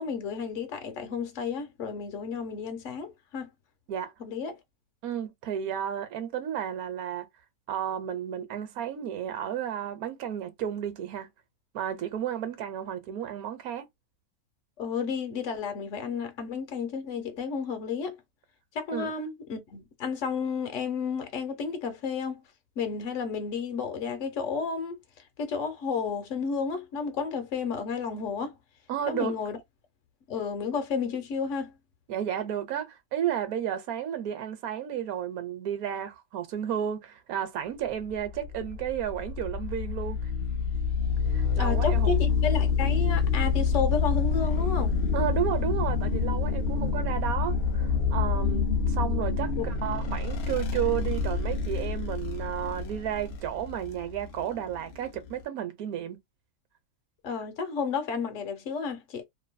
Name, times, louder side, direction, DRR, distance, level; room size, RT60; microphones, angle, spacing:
voice 1, 0.0-3.5 4.2-4.6 14.8-18.2 18.7-22.4 22.8-25.0 25.4-28.5 29.1-29.6 30.3-31.7 41.6-45.0 49.6-49.7 57.2-59.2, left 5 dB, 60° left, 1.0 m, -32 dB
voice 2, 5.0-7.3 7.7-11.3 11.7-13.9 18.9-19.1 28.9-29.3 32.1-40.2 41.3-42.2 45.1-56.2, right 10 dB, 70° right, 1.1 m, -32 dB
sound 1, 38.0-55.4, left 5 dB, 90° left, 0.5 m, -27 dB
2.6 x 2.5 x 2.2 m
omnidirectional pair, 1.6 m